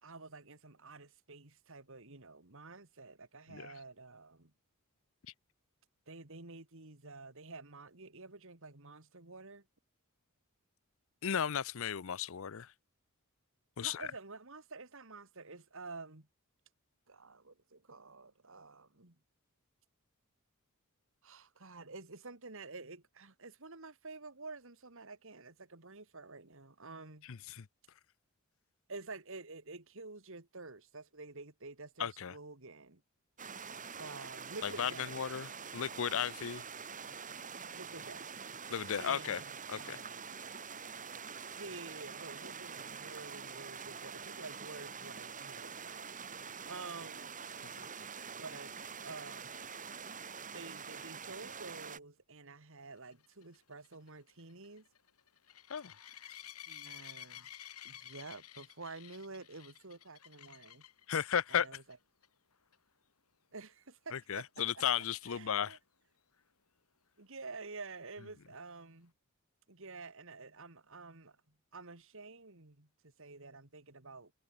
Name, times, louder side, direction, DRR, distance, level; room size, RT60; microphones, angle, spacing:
voice 1, 0.0-4.5 6.1-9.7 13.8-16.3 17.1-19.2 21.2-27.3 28.9-33.0 34.0-35.7 36.1-36.4 37.7-38.3 39.0-40.2 41.5-46.0 46.6-47.4 48.4-48.7 49.0-49.7 50.5-54.9 56.7-57.5 57.8-60.8 61.5-62.0 63.5-64.5 64.7-64.8 65.3-65.8 67.2-69.1 69.7-74.3, right 3 dB, 60° right, 2.5 m, -50 dB
voice 2, 11.2-12.7 13.8-14.1 27.3-27.7 32.0-32.3 34.6-36.6 38.7-39.4 39.7-40.0 55.7-55.9 61.1-61.7 64.1-65.8, left 8 dB, 65° left, 0.6 m, -35 dB
sound 1, 33.4-52.0, right 6 dB, 35° right, 5.5 m, -46 dB
sound 2, 53.1-61.1 61.6-61.9 62.2-62.3 62.7-62.8 66.4-66.5, left 11 dB, 85° left, 5.2 m, -52 dB
head